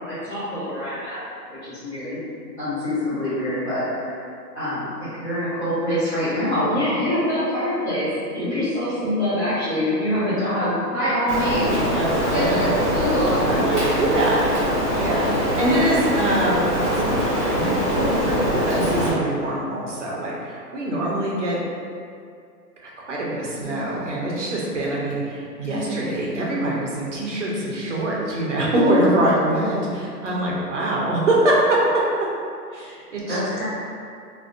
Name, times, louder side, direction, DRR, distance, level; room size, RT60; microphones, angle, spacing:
voice 1, 0.1-1.2 1.6-2.2 2.6-4.2 4.5-8.1 8.3-11.8 12.3-13.5 33.3-33.6, left 1 dB, 40° left, -17 dB, 0.9 m, -25 dB
Rain, 11.3-19.1, equal, 20° left, 0.6 m, -22 dB
voice 2, 12.3-12.7 13.5-14.4 15.0-16.6 17.2-21.6 22.8-32.0 32.7-33.4, right 1 dB, 50° right, -4 dB, 0.4 m, -24 dB
sound 1, 23.6-24.5 24.8-25.3 25.6-26.5 27.6-28.5 28.8-30.4, left 2 dB, 80° left, 0.6 m, -36 dB
2.4 x 2.1 x 2.4 m, 2.3 s
hypercardioid pair, 175°, 50 cm